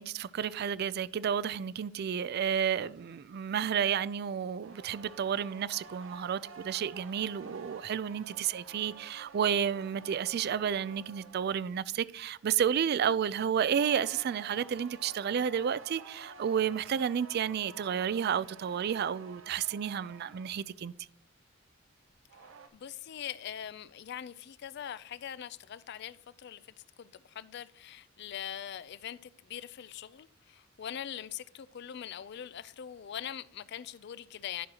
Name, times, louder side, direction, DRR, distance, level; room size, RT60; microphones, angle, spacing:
voice 1, 0.0-20.9, right 8 dB, 55° right, 0.3 m, -31 dB
sound 1, 4.6-11.8 13.7-20.8 22.1-22.7, right 5 dB, 75° right, 0.7 m, -51 dB
voice 2, 22.7-26.6 27.0-34.7, left 9 dB, 55° left, 0.4 m, -42 dB
11.0 x 6.3 x 2.9 m
head